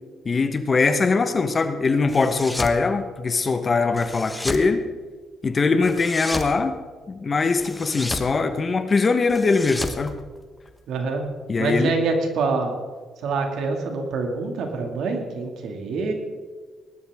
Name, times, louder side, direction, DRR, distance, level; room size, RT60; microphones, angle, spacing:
voice 1, 0.2-4.8 5.4-6.7 7.1-10.1 11.5-11.9, left 4 dB, 35° left, 9 dB, 1.2 m, -21 dB
sound 1, 2.1-2.8 4.0-4.7 5.8-6.6 7.6-8.3 9.3-10.8, left 1 dB, 10° left, 1.1 m, -32 dB
voice 2, 10.9-11.2 11.6-12.8 13.2-16.1, right 4 dB, 80° right, 3 dB, 2.3 m, -25 dB
19.5 x 12.0 x 3.7 m, 1.5 s
cardioid pair, 90°, 0 cm